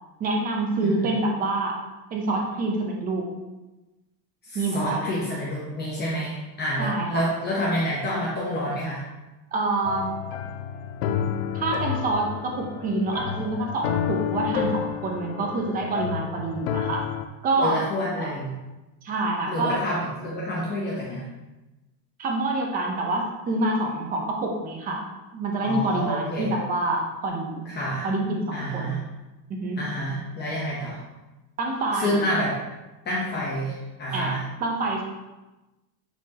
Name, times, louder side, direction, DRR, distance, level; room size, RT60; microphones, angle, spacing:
voice 1, 0.2-1.8 2.1-3.3 4.5-5.2 6.8-7.2 9.5-10.1 11.5-17.0 17.4-17.8 18.2-18.3 19.0-19.8 22.2-25.0 25.3-27.7 28.0-29.0 29.5-29.8 31.6-32.2 34.1-35.0, right 2 dB, 20° right, 0 dB, 0.7 m, -27 dB
voice 2, 4.4-9.0 17.6-18.5 19.5-21.3 25.6-26.5 27.7-28.1 28.5-29.0 29.8-31.0 31.9-32.5 33.1-33.7 34.0-34.4, equal, 20° left, -6 dB, 0.9 m, -28 dB
sound 1, 9.8-17.3, left 8 dB, 45° left, 0.5 m, -30 dB
9.3 x 4.2 x 2.9 m, 1.1 s
supercardioid pair, 165°, 49 cm